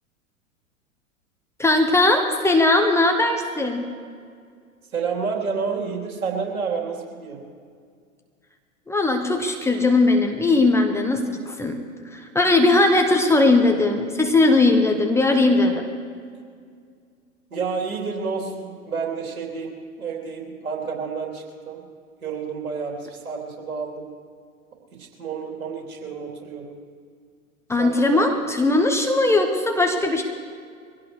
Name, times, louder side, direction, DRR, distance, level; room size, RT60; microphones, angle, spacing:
voice 1, 1.6-3.9 8.9-11.8 12.1-15.8 27.7-30.2, left 2 dB, 5° left, 3 dB, 1.1 m, -19 dB
voice 2, 4.9-7.4 17.5-21.8 22.2-24.1 25.0-26.7 27.8-28.4, right 5 dB, 75° right, 0 dB, 3.5 m, -30 dB
23.0 x 17.0 x 3.3 m, 2.1 s
figure-of-eight pair, 100°, 43 cm